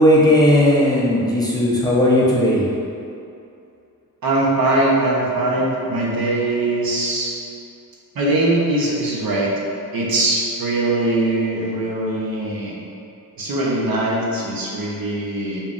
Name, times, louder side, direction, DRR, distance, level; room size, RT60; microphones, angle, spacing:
voice 1, 0.0-2.6, left 1 dB, 10° left, -7 dB, 0.4 m, -16 dB
voice 2, 4.2-7.3 8.1-9.5 9.9-12.8 13.4-15.6, right 2 dB, 80° right, -4 dB, 0.8 m, -21 dB
5.2 x 2.7 x 2.4 m, 2.6 s
wide cardioid pair, 170°, 35 cm